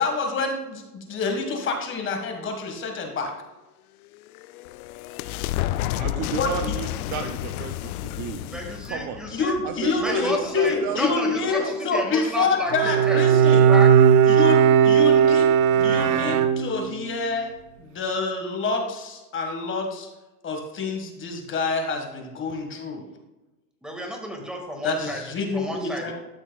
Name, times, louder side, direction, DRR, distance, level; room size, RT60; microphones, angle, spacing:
voice 1, 0.0-3.3 6.3-6.7 9.3-13.6 14.3-15.5 15.8-17.5 17.8-20.1 20.4-23.0 24.8-26.1, left 4 dB, 25° left, 3 dB, 1.6 m, -27 dB
sound 1, 4.0-10.5, left 14 dB, 70° left, 0.6 m, -31 dB
voice 2, 5.9-9.2 9.6-11.0 11.3-11.7, right 8 dB, 40° right, 6 dB, 0.7 m, -33 dB
voice 3, 8.5-9.5 10.0-13.2 13.7-13.9 23.8-25.2 25.5-26.1, equal, ahead, 1 dB, 1.7 m, -31 dB
Bowed string instrument, 12.7-17.1, right 8 dB, 70° right, 0.8 m, -17 dB
13.0 x 6.2 x 2.3 m, 1.1 s
hypercardioid pair, 120°, 45 cm